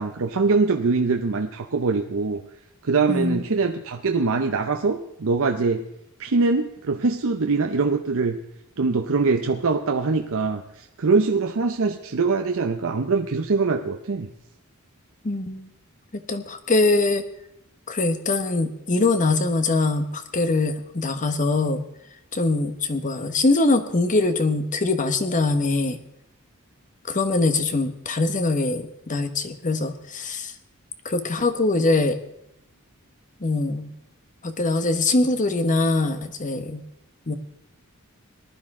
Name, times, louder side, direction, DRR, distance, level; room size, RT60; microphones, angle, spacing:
voice 1, 0.0-2.4 2.8-5.9 6.2-8.4 8.8-14.3, right 4 dB, 65° right, 5 dB, 0.7 m, -23 dB
voice 2, 3.1-3.4 15.2-15.7 16.1-17.3 17.9-21.9 22.3-26.0 27.1-30.5 31.0-32.2 33.4-33.9 34.4-36.8 37.3-37.4, left 2 dB, 35° left, 8 dB, 1.1 m, -23 dB
19.0 x 12.0 x 3.7 m, 0.79 s
head